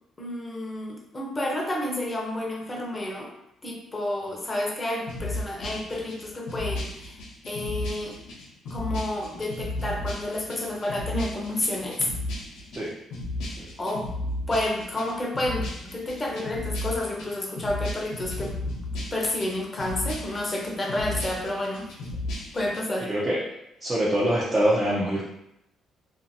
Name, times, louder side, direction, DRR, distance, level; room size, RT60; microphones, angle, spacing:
voice 1, 0.2-3.3 3.6-7.2 7.5-8.2 8.7-12.1 13.8-14.2 14.5-18.5 18.9-21.9 22.5-23.1, left 1 dB, 25° left, -1 dB, 0.7 m, -30 dB
sound 1, 5.1-22.8, left 1 dB, 80° left, 0.7 m, -35 dB
voice 2, 23.8-25.2, right 1 dB, 20° right, -7 dB, 0.6 m, -24 dB
2.6 x 2.4 x 2.7 m, 0.80 s
cardioid pair, 95°, 0 cm